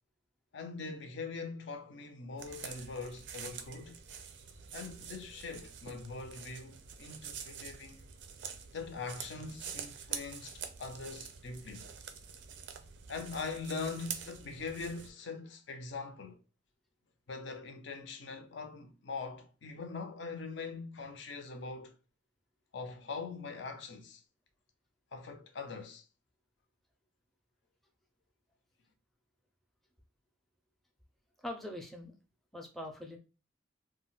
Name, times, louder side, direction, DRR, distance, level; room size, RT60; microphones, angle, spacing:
voice 1, 0.5-4.0 4.7-8.0 8.7-11.9 13.1-16.4 17.3-21.9 22.7-24.2 25.1-26.0, left 4 dB, 65° left, 0.5 m, -42 dB
sound 1, 2.4-15.1, right 7 dB, 65° right, 0.4 m, -46 dB
voice 2, 31.4-32.1 32.5-33.2, left 1 dB, ahead, 0.4 m, -42 dB
2.3 x 2.1 x 3.8 m
head